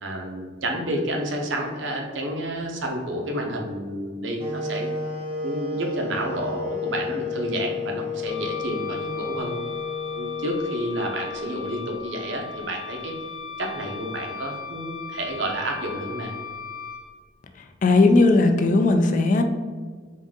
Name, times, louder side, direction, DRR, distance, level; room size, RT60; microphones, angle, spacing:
voice 1, 0.0-4.9 5.4-9.6 10.1-13.1 13.6-16.3, right 1 dB, 80° right, 1 dB, 0.7 m, -30 dB
sound 1, 4.4-12.4, left 3 dB, 30° right, 0.5 m, -32 dB
Wind instrument woodwind instrument, 8.2-17.0, left 5 dB, 85° left, 0.6 m, -37 dB
voice 2, 17.8-19.4, left 3 dB, 45° left, 6 dB, 0.3 m, -17 dB
3.7 x 2.6 x 3.6 m, 1.5 s
head